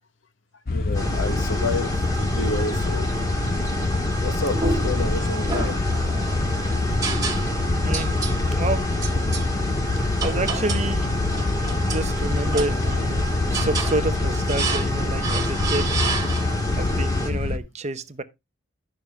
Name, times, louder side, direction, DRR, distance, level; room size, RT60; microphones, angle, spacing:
voice 1, 0.7-3.1 3.6-3.9 4.2-5.8 6.3-6.4 7.6-8.0 9.9-10.1, left 3 dB, 75° left, 0.9 m, -31 dB
sound 1, 0.7-17.6, left 3 dB, 50° left, 0.7 m, -25 dB
sound 2, 0.9-17.3, equal, 20° left, 1.7 m, -29 dB
sound 3, 4.5-5.1 5.5-6.4 7.0-7.7 7.9-8.4 9.0-9.5 10.2-10.9 11.3-12.1 12.5-13.1 13.5-14.0 14.5-14.9 15.2-16.7, right 4 dB, 20° right, 1.6 m, -30 dB
voice 2, 8.5-8.9 10.2-11.1 11.8-15.9 16.8-18.2, right 2 dB, 35° right, 0.8 m, -29 dB
11.0 x 6.5 x 3.2 m
head